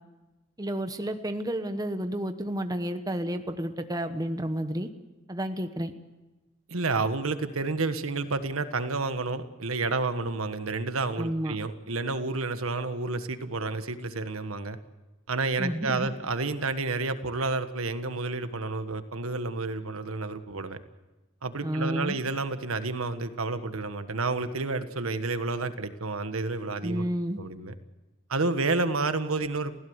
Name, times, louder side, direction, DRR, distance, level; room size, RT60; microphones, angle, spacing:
voice 1, 0.6-4.9 5.3-5.9 11.2-11.6 15.6-16.1 21.6-22.2 26.8-27.4, equal, 20° right, 8 dB, 1.1 m, -31 dB
voice 2, 6.7-14.8 15.3-20.8 21.4-27.0 27.4-27.7 28.3-29.7, right 3 dB, 90° right, 9 dB, 1.5 m, -30 dB
29.5 x 16.0 x 8.1 m, 1.1 s
head